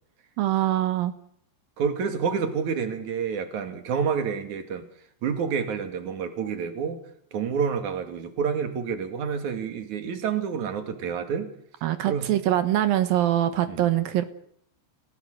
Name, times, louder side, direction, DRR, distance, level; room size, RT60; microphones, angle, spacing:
voice 1, 0.4-1.1 11.8-14.2, right 12 dB, 70° right, 2.6 m, -23 dB
voice 2, 1.8-4.9 5.2-7.0 7.3-11.5 12.0-12.3 13.7-13.9, right 6 dB, 50° right, 3.2 m, -28 dB
29.5 x 18.0 x 6.7 m
omnidirectional pair, 4.9 m